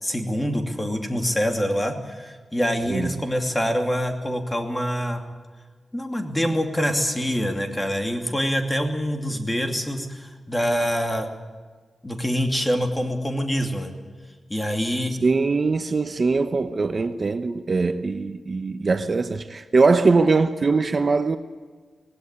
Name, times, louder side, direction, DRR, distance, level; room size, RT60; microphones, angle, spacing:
voice 1, 0.0-5.2 5.9-11.3 12.0-13.9 14.5-15.1, equal, 15° left, 2.7 m, -25 dB
voice 2, 15.2-21.4, right 4 dB, 40° right, 0.9 m, -21 dB
19.5 x 16.5 x 9.9 m
wide cardioid pair, 115°, 0 cm